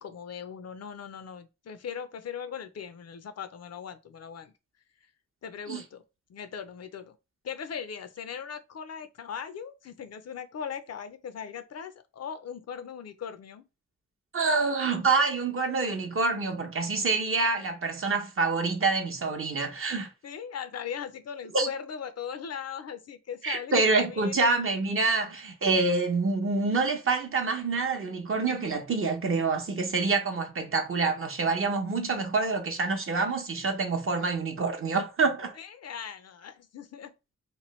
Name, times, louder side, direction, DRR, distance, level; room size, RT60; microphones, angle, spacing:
voice 1, 0.0-4.5 5.4-6.0 6.3-7.2 7.4-13.6 20.2-24.4 35.6-37.1, left 7 dB, 55° left, 0.5 m, -39 dB
voice 2, 14.3-20.1 21.5-21.7 23.4-35.6, right 3 dB, 45° right, 0.7 m, -27 dB
3.0 x 2.1 x 3.1 m
wide cardioid pair, 105°, 31 cm